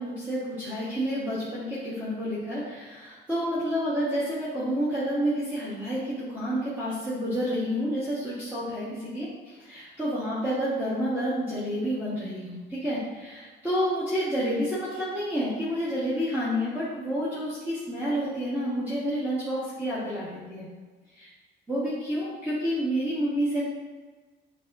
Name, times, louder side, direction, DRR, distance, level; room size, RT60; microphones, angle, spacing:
voice 1, 0.0-9.3 9.6-20.7 21.1-21.3 21.7-23.6, equal, 10° right, -11 dB, 1.3 m, -29 dB
6.4 x 2.8 x 2.6 m, 1.3 s
cardioid pair, 90°, 20 cm